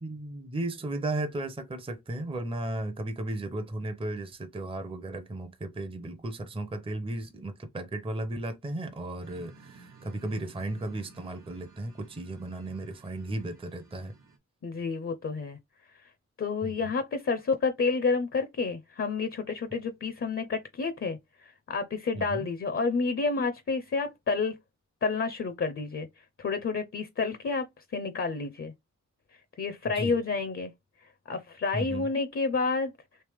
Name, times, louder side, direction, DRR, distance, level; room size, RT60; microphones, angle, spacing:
voice 1, 0.0-14.1 16.6-16.7 22.1-22.5 29.9-30.2 31.7-32.1, right 1 dB, 20° right, 0.5 m, -35 dB
sound 1, 9.2-14.4, right 3 dB, 90° right, 1.1 m, -55 dB
voice 2, 14.6-15.6 16.4-24.6 25.0-27.7 27.9-28.7 29.3-30.7 31.3-32.9, left 4 dB, 45° left, 0.5 m, -30 dB
3.3 x 2.8 x 3.3 m
wide cardioid pair, 110°, 30 cm